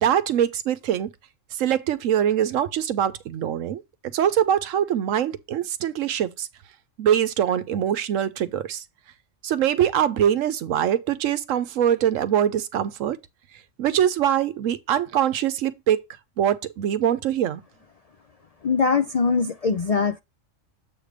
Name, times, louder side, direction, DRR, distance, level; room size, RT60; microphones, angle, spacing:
voice 1, 0.0-1.1 1.5-3.8 4.1-6.5 7.0-8.8 9.4-13.2 13.8-16.0 16.4-17.6, right 10 dB, 80° right, 1.1 m, -23 dB
voice 2, 18.6-20.2, left 5 dB, 75° left, 0.3 m, -22 dB
7.9 x 3.3 x 4.9 m
omnidirectional pair, 1.3 m